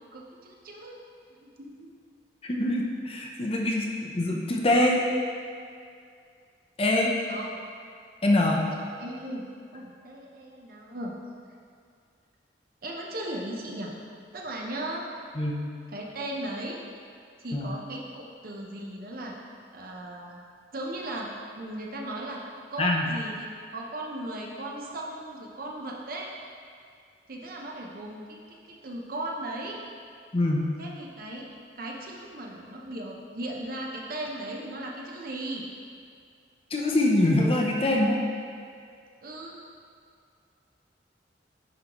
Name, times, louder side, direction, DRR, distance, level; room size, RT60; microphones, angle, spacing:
voice 1, 0.1-1.0 1.4-1.9 7.3-7.6 8.5-8.6 9.0-9.4 9.7-11.1 12.8-13.9 14.3-15.0 15.9-16.8 17.4-19.4 19.7-20.4 20.7-21.3 21.6-22.4 22.7-26.3 27.3-29.8 30.8-31.5 31.7-35.6 39.2-39.6, right 1 dB, 55° right, -1 dB, 0.8 m, -37 dB
voice 2, 2.4-5.0 6.8-7.1 8.2-8.7 15.4-15.6 17.5-17.7 22.8-23.1 30.3-30.7 36.7-38.2, left 1 dB, 35° left, -1 dB, 0.6 m, -24 dB
10.5 x 3.9 x 3.0 m, 2.3 s
head